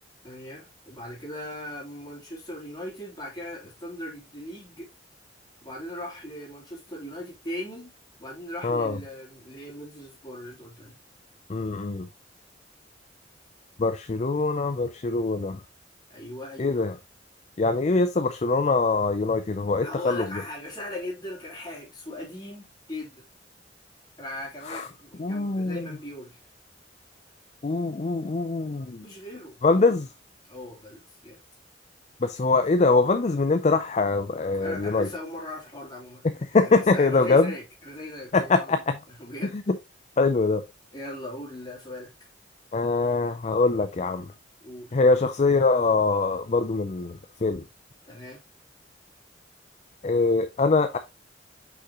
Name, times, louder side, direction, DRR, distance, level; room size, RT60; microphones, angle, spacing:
voice 1, 0.2-4.9 5.6-7.9 8.2-11.0 16.1-16.8 19.8-23.2 24.2-26.4 29.0-30.0 30.5-31.4 34.5-38.8 39.1-39.6 40.9-42.1 44.6-45.0 48.0-48.4, left 1 dB, 25° left, 3.3 m, -39 dB
voice 2, 8.6-9.0 11.5-12.1 13.8-15.6 16.6-17.0 17.6-20.4 24.7-24.8 25.2-25.9 27.6-29.0 29.6-30.1 32.2-35.1 36.2-37.5 38.3-39.0 39.5-39.8 40.2-40.6 42.7-44.3 44.9-47.6 50.0-51.0, left 3 dB, 40° left, 0.5 m, -23 dB
6.0 x 5.7 x 3.0 m
head